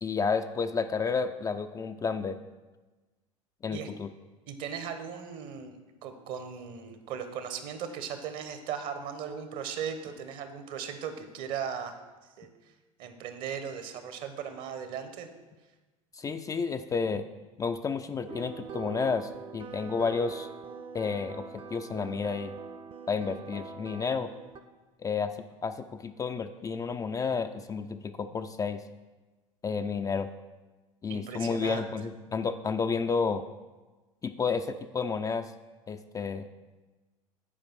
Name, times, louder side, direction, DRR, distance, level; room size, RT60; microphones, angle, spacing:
voice 1, 0.0-2.4 3.6-4.1 16.2-17.3 17.6-20.5 20.9-21.5 21.7-22.5 23.1-24.3 25.0-25.3 25.6-28.8 29.6-30.3 31.0-33.4 34.2-35.5 35.9-36.5, left 5 dB, 20° left, 8 dB, 0.4 m, -31 dB
voice 2, 4.5-12.0 12.4-12.5 13.0-15.3 31.1-31.9, right 7 dB, 55° right, 8 dB, 1.1 m, -37 dB
sound 1, 18.3-24.6, right 6 dB, 30° right, 0.7 m, -43 dB
9.9 x 5.0 x 6.0 m, 1.2 s
figure-of-eight pair, 75°, 17 cm